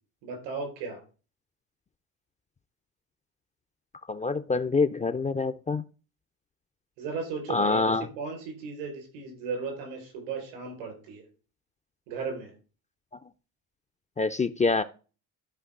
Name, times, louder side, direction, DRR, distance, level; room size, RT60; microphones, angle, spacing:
voice 1, 0.2-1.0 7.0-7.8 8.2-11.2 12.1-12.5, right 4 dB, 85° right, 5.2 m, -35 dB
voice 2, 4.1-5.8 7.5-8.1 14.2-14.8, left 4 dB, 15° left, 0.4 m, -26 dB
12.5 x 5.1 x 3.8 m
hypercardioid pair, 60°, 43 cm